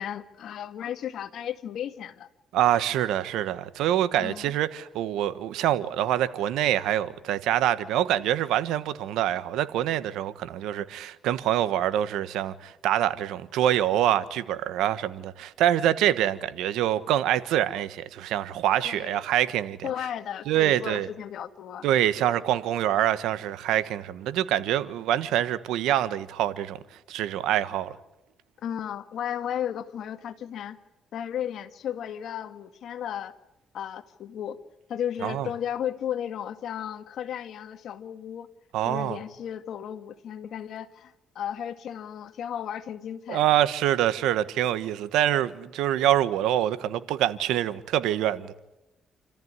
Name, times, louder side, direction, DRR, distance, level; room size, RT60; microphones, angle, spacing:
voice 1, 0.0-2.3 4.2-4.6 18.8-19.2 19.8-21.9 28.6-30.8 31.1-33.3 33.7-34.6 34.9-38.5 38.9-43.6, left 9 dB, 70° left, 1.8 m, -34 dB
voice 2, 2.5-19.9 20.5-21.1 21.8-26.8 27.1-28.0 35.2-35.5 38.7-39.2 43.3-48.5, right 12 dB, 90° right, 1.3 m, -25 dB
29.0 x 14.5 x 9.6 m
cardioid pair, 90°, 0 cm